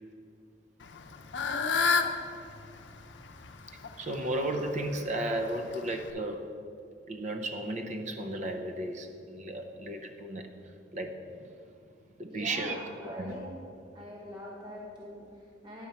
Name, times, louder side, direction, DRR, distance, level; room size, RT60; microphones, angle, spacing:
Fowl / Bird, 0.8-6.1, left 5 dB, 75° left, 0.6 m, -32 dB
voice 1, 4.0-6.5 7.1-11.5 12.2-12.8 13.0-13.4, right 1 dB, 40° right, 5 dB, 0.6 m, -34 dB
voice 2, 12.3-13.5 13.9-15.9, left 1 dB, 25° right, -6 dB, 1.2 m, -44 dB
10.0 x 4.2 x 6.8 m, 2.6 s
head